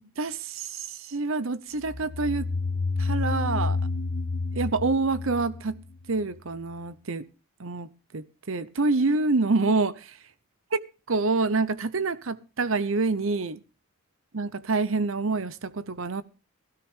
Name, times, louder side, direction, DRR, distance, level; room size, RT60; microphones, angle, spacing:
voice 1, 0.2-2.5 3.0-3.8 4.5-5.8 6.1-7.2 7.6-10.0 10.7-10.8 11.1-13.6 14.3-16.2, right 3 dB, 65° right, 0.8 m, -27 dB
sound 1, 1.8-6.4, left 3 dB, 85° left, 1.2 m, -29 dB
15.5 x 13.0 x 3.7 m
head